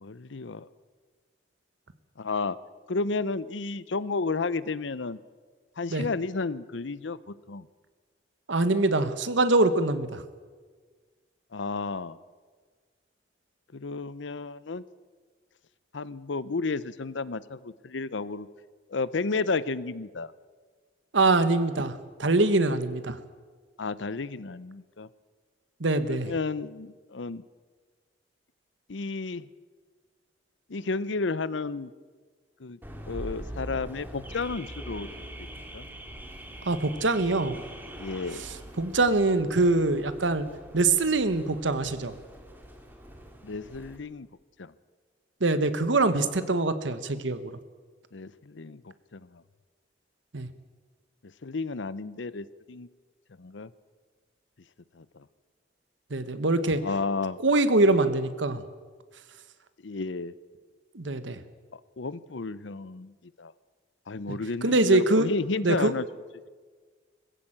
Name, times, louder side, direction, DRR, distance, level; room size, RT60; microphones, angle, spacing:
voice 1, 0.0-0.7 2.2-2.6 2.9-5.2 5.8-7.7 11.5-12.2 13.7-14.8 15.9-18.5 18.9-20.3 23.8-25.1 26.1-27.4 28.9-29.5 30.7-31.9 32.6-32.8 33.1-35.1 35.7-35.9 38.0-38.4 43.4-44.3 44.6-44.7 48.1-49.4 51.2-52.9 53.4-53.7 54.9-55.2 56.8-57.4 59.8-60.3 61.7-63.5 64.1-66.0, left 3 dB, 85° left, 18 dB, 0.7 m, -32 dB
voice 2, 8.5-10.2 21.1-23.2 25.8-26.3 36.6-37.6 38.8-40.5 40.7-42.1 45.4-47.6 50.3-50.5 56.1-56.8 57.4-58.6 60.9-61.4 64.3-65.3 65.6-65.9, right 2 dB, 90° right, 12 dB, 1.3 m, -24 dB
Car / Alarm, 32.8-44.0, equal, 10° right, 2.4 m, -43 dB
20.0 x 15.5 x 8.9 m, 1.5 s
head